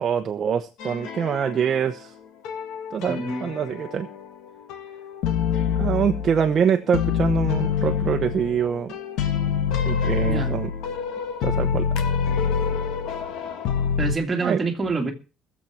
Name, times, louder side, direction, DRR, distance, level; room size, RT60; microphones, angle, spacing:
voice 1, 0.0-2.1 2.9-4.1 5.8-8.9 9.9-10.7 11.4-11.9 14.4-14.6, right 7 dB, 35° right, 0.9 m, -24 dB
sound 1, 0.8-2.0 2.4-4.3 4.7-6.6 6.9-14.2, left 7 dB, 80° left, 1.5 m, -26 dB
voice 2, 3.0-3.5 10.2-10.6 14.0-15.1, right 3 dB, 15° right, 2.1 m, -26 dB
18.5 x 7.5 x 5.8 m
cardioid pair, 170°, 0 cm